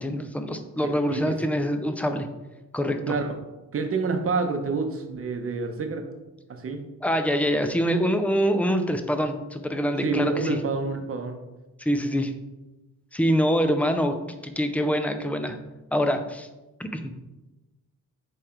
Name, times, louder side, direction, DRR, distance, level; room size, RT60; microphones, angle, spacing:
voice 1, 0.0-2.3 2.7-3.1 7.0-10.6 11.8-12.3 13.1-14.1 14.4-15.6 15.9-16.5 16.8-17.0, equal, 5° left, 7 dB, 0.5 m, -25 dB
voice 2, 0.8-1.4 3.1-3.4 3.7-6.1 6.5-6.8 10.0-11.4, right 4 dB, 45° right, 5 dB, 0.8 m, -28 dB
7.5 x 3.3 x 4.4 m, 1.1 s
wide cardioid pair, 140°, 33 cm